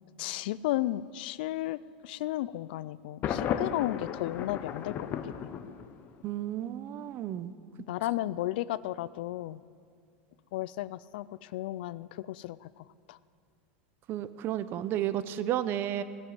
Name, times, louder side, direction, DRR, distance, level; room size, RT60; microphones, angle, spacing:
voice 1, 0.2-1.8 2.0-5.1 7.9-9.6 10.5-13.2, left 15 dB, 70° left, 18 dB, 0.4 m, -34 dB
Thunder, 3.2-6.2, left 8 dB, 40° left, 0.9 m, -34 dB
voice 2, 6.2-7.5 14.1-16.0, right 12 dB, 45° right, 13 dB, 0.7 m, -32 dB
18.5 x 7.4 x 8.0 m, 2.3 s
supercardioid pair, 115°, 5 cm